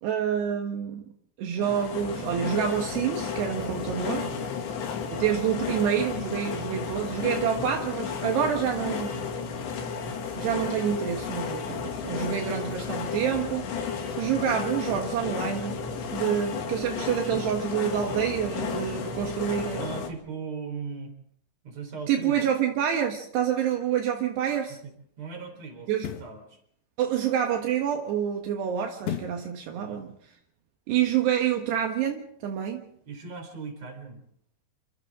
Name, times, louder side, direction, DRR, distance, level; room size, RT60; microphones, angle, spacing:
voice 1, 0.0-1.0 1.4-4.3 5.1-9.3 10.4-13.9 14.2-15.8 16.1-19.9 22.1-24.8 25.9-26.1 27.0-30.2 30.9-32.8, right 9 dB, 75° right, 3 dB, 3.5 m, -27 dB
sound 1, 1.6-20.1, left 6 dB, 85° left, 4.7 m, -33 dB
voice 2, 3.9-4.7 19.8-21.1 21.6-22.4 24.7-26.6 29.7-30.0 33.1-34.2, right 5 dB, 40° right, 4 dB, 5.2 m, -39 dB
sound 2, 24.0-24.2 25.9-26.4 29.0-29.5 29.9-30.0, left 9 dB, 60° left, 2.2 m, -34 dB
28.5 x 25.5 x 3.8 m, 0.67 s
omnidirectional pair, 5.0 m